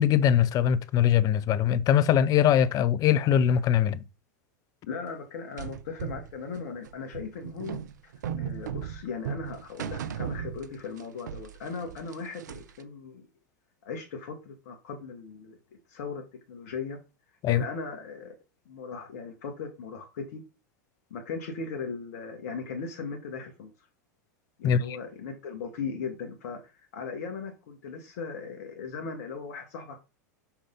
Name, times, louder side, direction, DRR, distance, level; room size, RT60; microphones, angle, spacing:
voice 1, 0.0-4.0 17.4-17.6 24.6-25.0, left 9 dB, 40° left, 0.8 m, -22 dB
voice 2, 4.9-13.3 13.8-15.6 15.9-17.0 17.5-18.3 18.7-20.4 21.1-23.7 24.6-30.0, left 5 dB, 65° left, 2.1 m, -38 dB
sound 1, 5.6-11.0 11.3-12.8, right 8 dB, 75° right, 0.9 m, -36 dB
7.0 x 5.7 x 5.4 m
hypercardioid pair, 100°, 10 cm